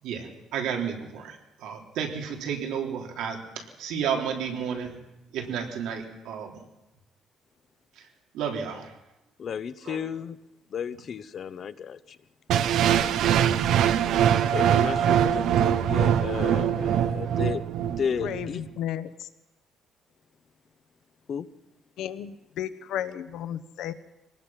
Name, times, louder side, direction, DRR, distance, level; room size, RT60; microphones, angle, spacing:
voice 1, 0.0-5.0 5.3-6.6 8.0-8.1 8.3-8.9 9.8-10.1, right 7 dB, 90° right, 3.8 m, -32 dB
voice 2, 9.4-10.4 10.7-12.2 14.5-17.6 18.0-18.6 21.3-21.4, left 7 dB, 35° left, 0.7 m, -33 dB
sound 1, 12.5-18.5, right 9 dB, 65° right, 0.8 m, -23 dB
voice 3, 18.2-19.3 22.0-23.9, left 11 dB, 65° left, 1.2 m, -34 dB
25.0 x 19.0 x 5.9 m
cardioid pair, 180°, 0 cm